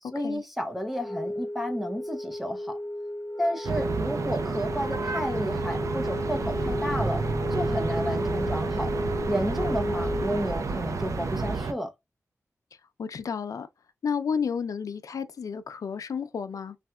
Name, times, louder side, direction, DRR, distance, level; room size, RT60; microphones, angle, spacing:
voice 1, 0.0-2.8 3.4-7.2 7.5-8.9 9.3-11.9, equal, 5° right, 0.5 m, -32 dB
Wind instrument woodwind instrument, 0.9-10.6, left 1 dB, 35° left, 0.9 m, -33 dB
sound 1, 3.6-11.7, right 4 dB, 65° right, 0.5 m, -31 dB
sound 2, 6.3-11.6, equal, 90° right, 1.4 m, -38 dB
voice 2, 13.0-13.7 14.0-16.8, left 6 dB, 80° left, 0.4 m, -31 dB
3.3 x 2.7 x 2.2 m
wide cardioid pair, 110°, 6 cm